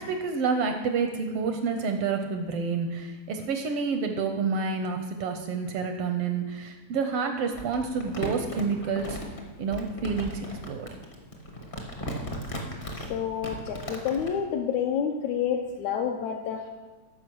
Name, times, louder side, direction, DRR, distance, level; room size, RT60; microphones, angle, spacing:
voice 1, 0.0-9.2 9.6-10.9, right 5 dB, 75° right, 6 dB, 1.3 m, -29 dB
Crumpling crinkling, 7.5-14.3, equal, 40° left, 0.7 m, -36 dB
voice 2, 13.0-16.7, left 8 dB, 75° left, 0 dB, 2.0 m, -29 dB
13.5 x 5.1 x 6.2 m, 1.2 s
omnidirectional pair, 3.4 m